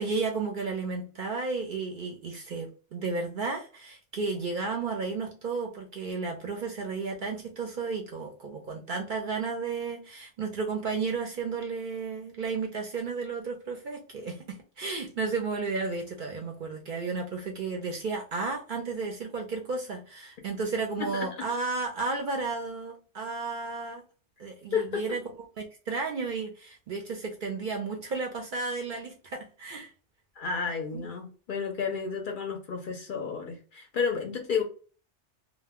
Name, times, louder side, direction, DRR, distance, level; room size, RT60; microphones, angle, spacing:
voice 1, 0.0-24.0 24.4-25.2 25.6-29.9 30.9-31.1, right 4 dB, 60° right, 0.6 m, -33 dB
voice 2, 21.0-21.5 24.7-25.2 30.4-34.6, left 5 dB, 60° left, 0.6 m, -31 dB
2.1 x 2.1 x 3.4 m
omnidirectional pair, 1.2 m